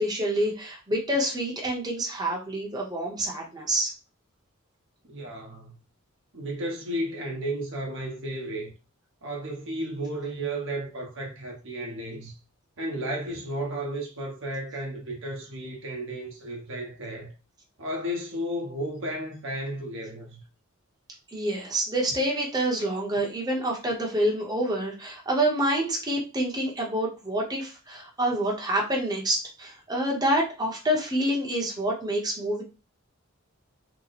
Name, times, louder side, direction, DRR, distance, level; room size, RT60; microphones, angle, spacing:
voice 1, 0.0-3.9 21.3-32.6, right 1 dB, 20° right, 0.8 m, -27 dB
voice 2, 5.0-5.8 6.3-8.7 9.2-12.3 12.8-17.3 17.8-20.4, right 1 dB, 60° right, 0.9 m, -33 dB
2.9 x 2.1 x 4.0 m
head